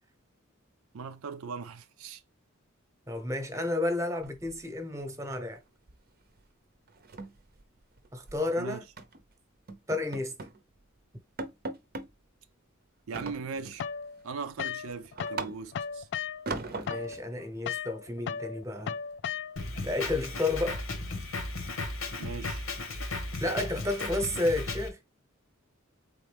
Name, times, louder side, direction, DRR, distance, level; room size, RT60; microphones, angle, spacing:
voice 1, 0.9-2.2 8.6-8.8 13.1-13.8 14.2-16.1 22.2-22.7, right 5 dB, 80° right, 0.4 m, -39 dB
voice 2, 3.1-5.6 8.1-8.8 9.9-10.4 16.7-19.0 19.8-20.8 23.4-25.0, left 2 dB, 15° right, 1.0 m, -31 dB
sound 1, 4.2-5.0 5.3-5.6 5.9-6.1 6.4-6.5 6.9-8.4 9.0-9.2 9.7-10.6 11.0-11.1 11.4-12.1 13.1-13.9 14.3-15.9 16.5-17.2, right 3 dB, 45° right, 0.7 m, -40 dB
sound 2, 13.8-15.4 15.7-19.8, left 7 dB, 60° left, 0.4 m, -36 dB
Drum kit, 19.6-24.9, left 2 dB, 85° left, 1.3 m, -35 dB
4.2 x 3.8 x 3.4 m
head